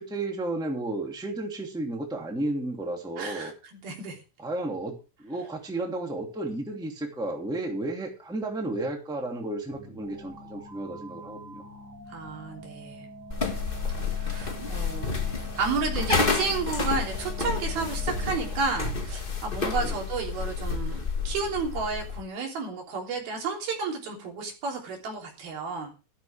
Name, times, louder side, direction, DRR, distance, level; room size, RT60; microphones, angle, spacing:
voice 1, 0.0-3.5 4.4-11.6 19.7-20.0, right 2 dB, ahead, 1 dB, 2.0 m, -33 dB
voice 2, 3.2-3.5 3.8-4.2 12.1-13.1 14.1-15.1 15.6-25.9, right 4 dB, 80° right, 0 dB, 5.3 m, -32 dB
sound 1, 9.7-18.9, right 2 dB, 30° right, 5.3 m, -45 dB
sound 2, 13.3-22.2, left 4 dB, 45° left, 0.6 m, -30 dB
13.0 x 13.0 x 3.4 m, 0.32 s
omnidirectional pair, 4.2 m